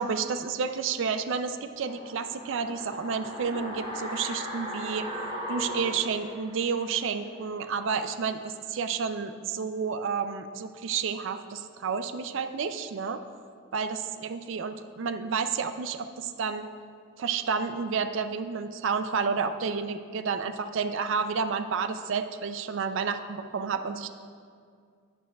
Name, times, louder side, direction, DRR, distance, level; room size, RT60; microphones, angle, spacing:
voice 1, 0.0-5.1 5.5-13.2 13.7-16.7 17.2-24.1, right 5 dB, 60° right, 9 dB, 0.4 m, -30 dB
sound 1, 1.7-6.9 7.2-7.3, equal, 40° left, 2.2 m, -37 dB
11.0 x 8.7 x 2.3 m, 2.2 s
head